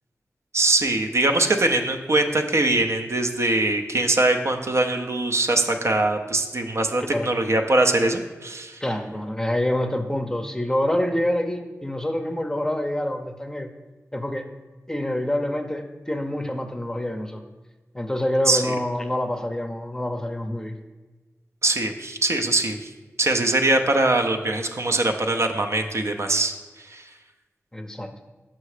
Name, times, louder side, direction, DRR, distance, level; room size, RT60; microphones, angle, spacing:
voice 1, 0.5-8.8 18.5-18.7 21.6-22.9 23.2-27.0, right 2 dB, 60° right, 5 dB, 0.6 m, -22 dB
voice 2, 8.8-13.7 14.1-14.5 14.9-17.4 17.9-20.8 27.7-28.1, left 1 dB, 10° left, 6 dB, 0.6 m, -26 dB
5.8 x 5.4 x 4.9 m, 1.2 s
cardioid pair, 55°, 5 cm